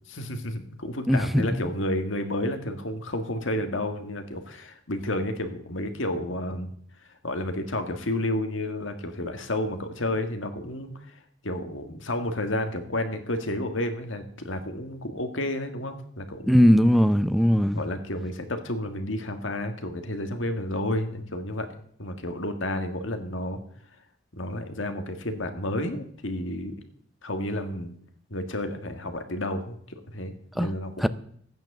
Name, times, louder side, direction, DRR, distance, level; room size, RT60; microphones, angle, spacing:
voice 1, 0.1-6.7 7.2-11.1 11.4-16.7 17.7-21.7 22.0-23.6 24.3-26.8 27.2-27.9 28.3-31.1, left 1 dB, 80° left, 1.8 m, -31 dB
voice 2, 1.1-1.6 16.5-17.8 30.6-30.7 31.0-31.1, equal, ahead, 0.5 m, -19 dB
14.0 x 9.2 x 6.7 m
head